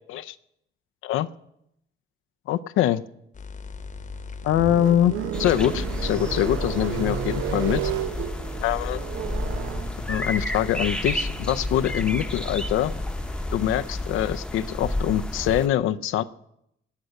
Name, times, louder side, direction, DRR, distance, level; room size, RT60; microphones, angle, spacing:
voice 1, 2.5-3.0 4.4-5.1 5.4-7.9 8.6-9.0 10.1-12.9 13.5-16.2, left 11 dB, 85° left, 10 dB, 0.6 m, -24 dB
sound 1, 3.3-14.4, left 5 dB, 40° left, 1.0 m, -39 dB
sound 2, 3.8-14.0, right 10 dB, 90° right, 0.8 m, -34 dB
sound 3, 5.3-15.7, left 1 dB, 5° left, 0.9 m, -31 dB
20.0 x 7.8 x 6.5 m, 0.78 s
cardioid pair, 90°, 20 cm